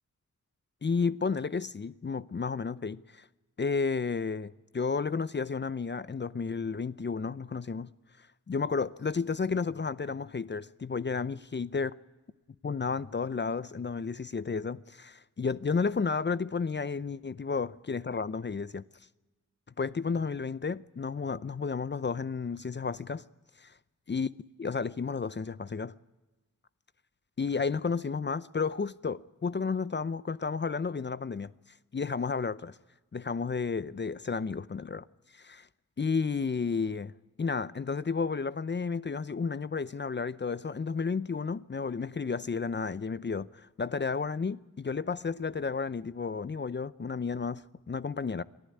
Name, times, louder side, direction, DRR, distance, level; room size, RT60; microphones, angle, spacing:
voice 1, 0.8-3.3 3.6-7.9 8.5-11.9 12.6-18.8 19.8-23.2 23.6-23.7 24.1-24.3 24.6-25.9 27.4-31.5 31.9-32.8 33.1-35.0 35.3-35.7 36.0-37.1 37.4-48.4, left 5 dB, 35° left, 0.6 m, -32 dB
23.5 x 14.0 x 9.8 m
cardioid pair, 55°, 32 cm